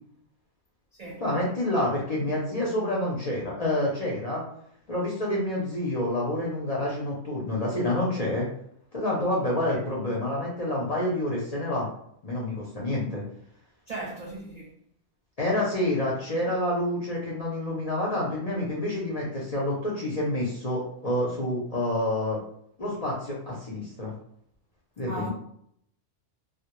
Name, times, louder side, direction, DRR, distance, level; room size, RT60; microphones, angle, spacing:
voice 1, 1.2-4.4 4.9-8.5 8.9-11.9 12.2-13.2 15.4-22.4 22.8-24.1 25.0-25.3, left 1 dB, 50° left, 0.5 m, -28 dB
voice 2, 13.9-14.7 25.1-25.3, right 2 dB, 70° right, 0.3 m, -37 dB
2.1 x 2.1 x 2.9 m
omnidirectional pair, 1.2 m